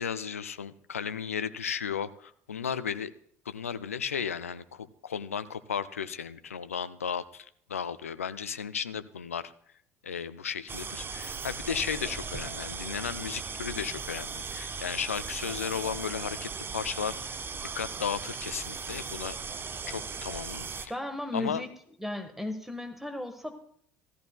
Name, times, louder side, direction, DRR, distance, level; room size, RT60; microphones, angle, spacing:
voice 1, 0.0-3.1 3.5-9.5 10.0-19.4 19.9-20.9 21.3-21.6, left 7 dB, 85° left, 13 dB, 0.4 m, -35 dB
sound 1, 10.7-20.9, right 5 dB, 30° right, 0.8 m, -38 dB
voice 2, 20.9-21.7 22.0-23.5, left 1 dB, 5° right, 7 dB, 1.3 m, -35 dB
16.0 x 14.5 x 2.2 m, 0.64 s
figure-of-eight pair, 60°, 7 cm